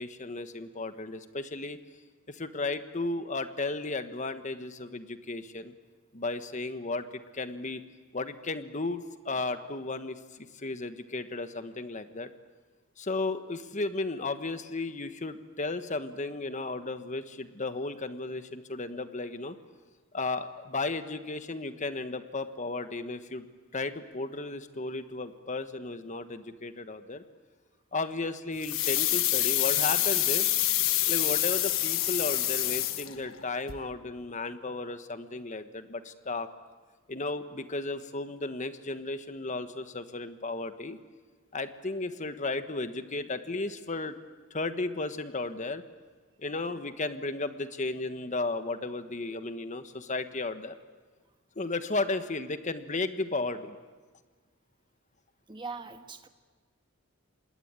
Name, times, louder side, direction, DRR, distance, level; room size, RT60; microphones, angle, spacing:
voice 1, 0.0-1.8 2.3-5.7 6.1-7.1 7.3-7.8 8.1-12.3 13.0-19.6 20.1-23.4 23.7-27.2 27.9-30.5 31.1-36.5 37.1-41.0 41.5-44.1 44.5-45.8 46.4-50.7 51.5-53.8, left 3 dB, 35° left, 10 dB, 1.3 m, -34 dB
sound 1, 28.6-33.4 33.7-33.8, left 14 dB, 80° left, 1.4 m, -27 dB
voice 2, 55.5-56.3, right 4 dB, 25° right, 8 dB, 1.4 m, -41 dB
26.5 x 20.0 x 8.9 m, 1.4 s
head